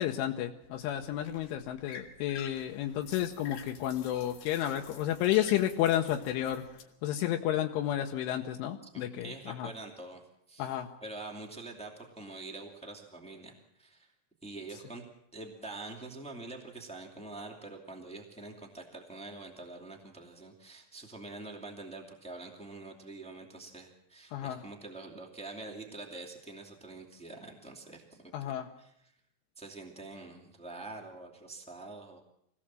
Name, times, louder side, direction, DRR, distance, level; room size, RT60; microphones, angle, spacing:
voice 1, 0.0-6.6 7.0-9.3 9.6-9.7 10.6-10.9 24.3-24.6 28.3-28.7, left 12 dB, 85° left, 3 dB, 3.4 m, -31 dB
sound 1, 0.6-6.8, left 6 dB, 60° left, 2.9 m, -50 dB
voice 2, 8.9-10.2 10.5-10.7 11.0-14.1 14.4-15.0 15.3-29.1 29.6-32.2, right 2 dB, 10° left, 0 dB, 0.3 m, -45 dB
24.0 x 17.5 x 7.5 m, 0.80 s
omnidirectional pair, 5.5 m